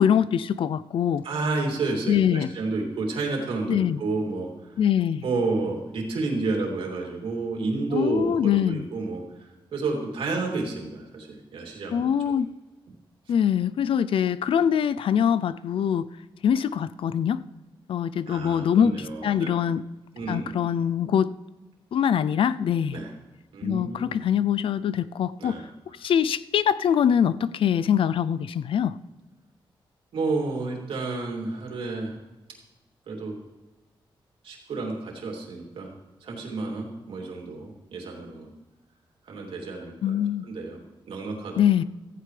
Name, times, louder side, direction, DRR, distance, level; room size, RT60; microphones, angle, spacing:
voice 1, 0.0-1.2 2.1-2.5 3.7-4.0 4.8-5.2 7.9-8.9 11.9-12.5 13.3-16.1 16.4-17.4 17.9-19.8 20.3-21.3 21.9-23.0 23.6-25.6 26.0-29.0 40.0-40.5 41.6-41.8, left 8 dB, 80° left, 16 dB, 0.5 m, -23 dB
voice 2, 1.2-4.7 5.2-9.2 9.7-12.1 18.3-19.6 20.1-20.6 22.9-23.1 23.5-24.2 25.4-25.7 30.1-32.2 33.1-33.4 34.4-35.9 36.2-38.5 39.2-40.8 41.1-41.6, right 3 dB, 90° right, 0 dB, 3.0 m, -30 dB
15.5 x 14.5 x 3.4 m, 1.1 s
cardioid pair, 100°, 9 cm